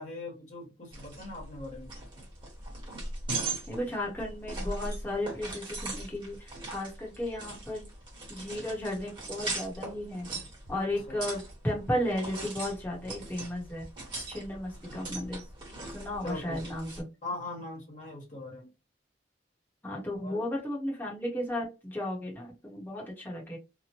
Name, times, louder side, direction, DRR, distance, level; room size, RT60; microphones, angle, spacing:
voice 1, 0.0-1.9 10.9-11.2 16.2-16.6 17.2-18.7 20.2-20.4, left 2 dB, 45° left, 1.2 m, -41 dB
sound 1, 0.9-17.0, right 2 dB, 30° right, 1.1 m, -40 dB
voice 2, 3.7-7.8 8.3-10.3 10.7-13.9 14.3-15.4 15.9-17.0 19.8-23.6, left 1 dB, 10° left, 0.9 m, -34 dB
2.9 x 2.1 x 2.9 m
head